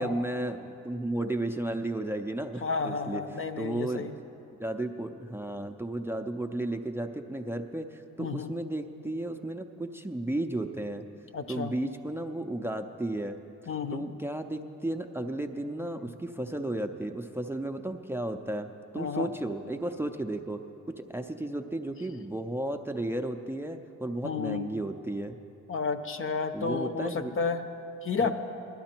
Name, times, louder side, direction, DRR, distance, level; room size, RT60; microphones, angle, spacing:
voice 1, 0.0-3.2 3.6-4.1 4.6-11.0 11.5-13.4 13.9-18.7 18.9-20.6 21.0-25.4 26.5-27.3 28.2-28.3, right 1 dB, 10° right, 6 dB, 0.5 m, -33 dB
voice 2, 2.6-4.1 8.2-8.5 11.3-11.7 13.7-14.1 19.0-19.3 24.2-24.7 25.7-27.6 28.0-28.3, left 5 dB, 45° left, 9 dB, 0.8 m, -31 dB
16.5 x 11.5 x 4.5 m, 2.9 s
cardioid pair, 90°, 30 cm